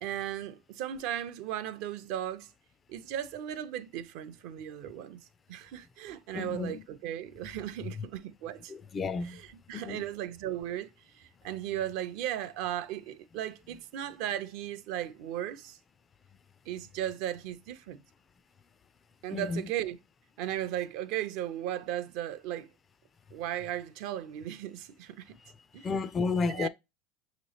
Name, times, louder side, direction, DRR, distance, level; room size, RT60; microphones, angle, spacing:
voice 1, 0.0-2.5 2.9-5.2 5.5-8.7 9.2-10.9 11.1-15.8 16.7-18.0 19.2-20.0 20.4-22.7 23.3-25.4 25.7-25.9 26.5-26.7, right 11 dB, 65° right, 0.5 m, -36 dB
voice 2, 6.3-6.8 8.7-9.4 9.7-10.0 19.3-19.7 25.8-26.7, left 4 dB, 25° left, 0.3 m, -32 dB
6.3 x 3.0 x 2.8 m
supercardioid pair, 120°, 0 cm